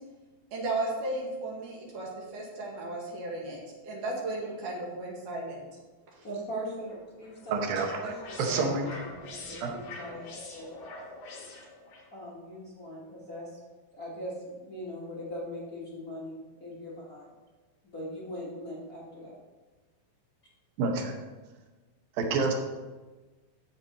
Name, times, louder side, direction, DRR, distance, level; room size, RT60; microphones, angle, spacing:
voice 1, 0.5-5.7 6.1-6.2 7.8-7.9, right 2 dB, 60° right, -3 dB, 3.2 m, -35 dB
voice 2, 6.2-10.8 12.1-13.6 13.9-17.3 17.8-19.3, equal, 55° left, -7 dB, 1.0 m, -40 dB
sound 1, 6.9-12.1, left 2 dB, 70° left, 3.2 m, -44 dB
voice 3, 7.5-8.1 8.4-8.9 9.6-9.8 20.8-21.2 22.1-22.5, right 4 dB, 75° right, 2 dB, 2.7 m, -28 dB
8.7 x 7.1 x 4.1 m, 1.2 s
omnidirectional pair, 4.3 m